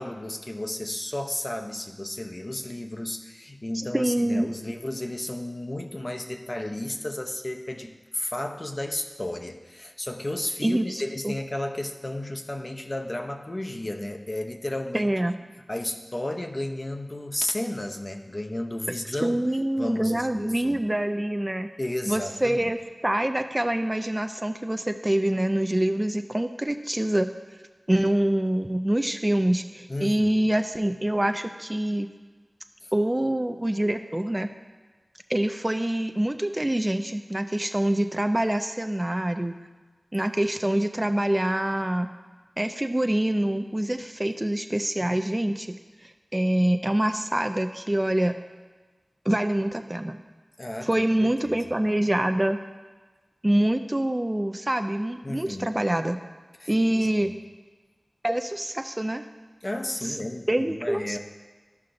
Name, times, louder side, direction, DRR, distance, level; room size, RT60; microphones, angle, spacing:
voice 1, 0.0-15.1 15.7-19.4 19.8-20.8 21.8-22.7 29.9-30.3 32.8-32.9 50.6-51.6 55.2-55.7 56.6-57.3 59.6-61.2, left 1 dB, 35° left, 4 dB, 0.7 m, -33 dB
voice 2, 3.9-4.5 10.6-10.9 11.2-11.3 14.9-15.3 19.2-21.7 22.1-22.8 23.0-27.3 27.9-32.1 32.9-34.5 35.3-39.5 40.1-42.1 42.6-45.8 46.0-48.4 49.3-50.2 50.8-52.6 53.4-56.2 56.7-57.3 58.2-59.2 60.0-60.2 60.5-61.2, right 1 dB, 25° right, 7 dB, 0.4 m, -25 dB
13.0 x 5.5 x 2.6 m, 1.3 s
cardioid pair, 40°, 0 cm